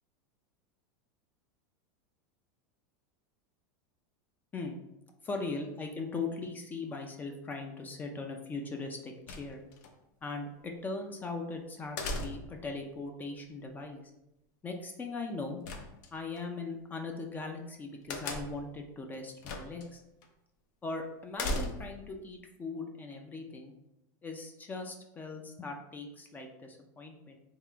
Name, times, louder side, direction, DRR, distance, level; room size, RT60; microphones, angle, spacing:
voice 1, 5.2-9.6 10.2-14.0 14.6-15.6 16.1-20.0 20.8-23.7 24.2-27.4, left 3 dB, 15° left, 3 dB, 0.4 m, -39 dB
sound 1, 9.3-9.9 12.0-12.7 15.6-16.4 18.1-18.7 19.4-19.9 20.2-20.3 21.3-22.1, left 2 dB, 65° left, 0.6 m, -36 dB
3.5 x 2.4 x 3.3 m, 0.92 s
supercardioid pair, 135°, 10 cm